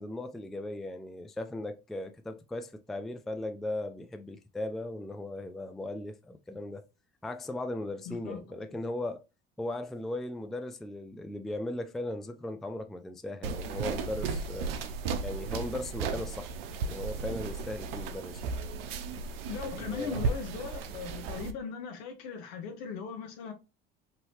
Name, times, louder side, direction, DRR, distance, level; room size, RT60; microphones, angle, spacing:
voice 1, 0.0-6.8 7.2-9.2 9.6-14.7 15.2-16.5 16.8-18.5 19.8-20.2, left 1 dB, ahead, 0.3 m, -37 dB
voice 2, 8.1-8.8 19.5-23.5, left 6 dB, 70° left, 0.9 m, -39 dB
sound 1, 13.4-21.5, right 5 dB, 80° right, 0.5 m, -35 dB
2.8 x 2.7 x 3.0 m
hypercardioid pair, 65°, 29 cm